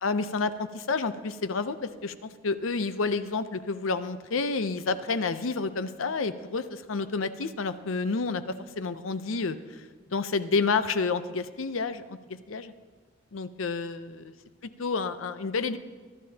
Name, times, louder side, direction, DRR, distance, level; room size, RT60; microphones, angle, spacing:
voice 1, 0.0-8.4 8.8-9.8 10.1-12.7 13.3-14.3 14.8-15.8, left 4 dB, 85° left, 12 dB, 0.7 m, -29 dB
22.0 x 12.0 x 2.9 m, 1.4 s
head